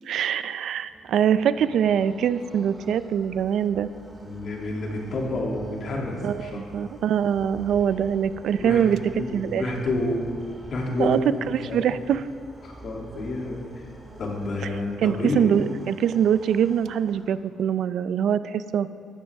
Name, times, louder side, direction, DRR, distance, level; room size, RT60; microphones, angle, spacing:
voice 1, 0.1-3.9 6.2-9.6 11.0-11.2 11.5-12.2 15.0-18.9, right 8 dB, 70° right, 14 dB, 0.4 m, -23 dB
sound 1, 0.7-17.7, right 1 dB, 25° right, 2.2 m, -46 dB
voice 2, 4.2-6.9 8.6-8.8 9.1-10.3 10.7-11.2 11.5-11.9 12.6-13.8 14.2-15.5, left 2 dB, 55° left, -2 dB, 2.8 m, -29 dB
15.0 x 12.5 x 3.6 m, 2.2 s
cardioid pair, 90°, 0 cm